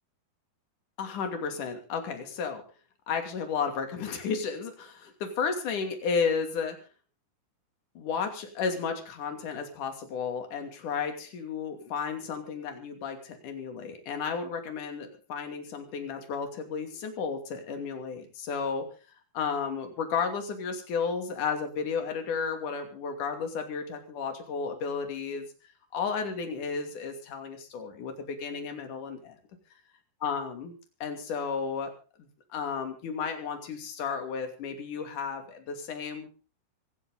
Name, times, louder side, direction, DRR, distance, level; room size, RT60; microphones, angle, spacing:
voice 1, 1.0-2.6 3.1-5.1 5.4-6.8 8.0-18.8 19.3-25.5 25.9-29.4 30.2-30.7 31.0-31.9 32.5-36.3, left 5 dB, 50° left, 5 dB, 4.0 m, -33 dB
24.5 x 10.5 x 3.9 m, 0.36 s
omnidirectional pair, 4.8 m